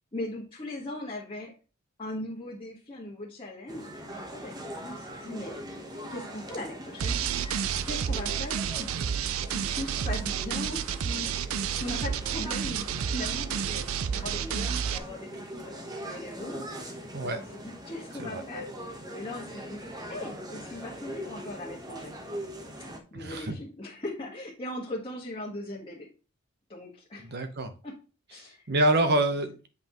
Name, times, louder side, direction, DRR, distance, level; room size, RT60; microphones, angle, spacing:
voice 1, 0.1-1.5 2.0-5.5 6.1-7.2 7.8-8.9 9.4-13.8 14.1-18.7 19.1-19.8 20.1-22.2 23.1-26.1 26.7-27.4 27.8-28.0 28.3-28.6, left 1 dB, 25° left, -5 dB, 1.5 m, -39 dB
sound 1, 3.7-23.0, right 1 dB, 20° right, 1.0 m, -42 dB
sound 2, 7.0-15.0, right 8 dB, 70° right, 0.5 m, -30 dB
voice 2, 23.1-23.6 27.2-27.7 28.7-29.7, right 1 dB, 50° right, 8 dB, 1.0 m, -26 dB
7.9 x 5.5 x 3.0 m, 0.34 s
head